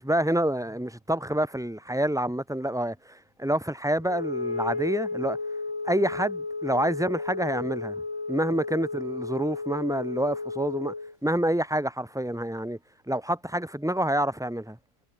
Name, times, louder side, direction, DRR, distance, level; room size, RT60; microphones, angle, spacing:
voice 1, 0.0-5.4 5.8-7.9 8.3-10.9 11.2-12.8 13.1-14.8, right 1 dB, ahead, 3.3 m, -27 dB
Wind instrument woodwind instrument, 4.0-11.1, left 3 dB, 60° left, 5.9 m, -33 dB
omnidirectional pair, 2.4 m